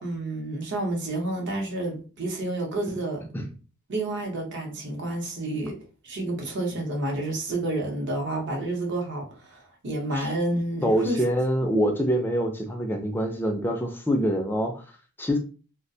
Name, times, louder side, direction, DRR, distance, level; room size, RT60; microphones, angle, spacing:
voice 1, 0.0-3.2 3.9-5.7 6.0-11.2, right 1 dB, 55° right, 0.7 m, -29 dB
voice 2, 10.8-14.8 15.2-15.4, equal, 10° left, 0.3 m, -25 dB
2.3 x 2.1 x 2.6 m
head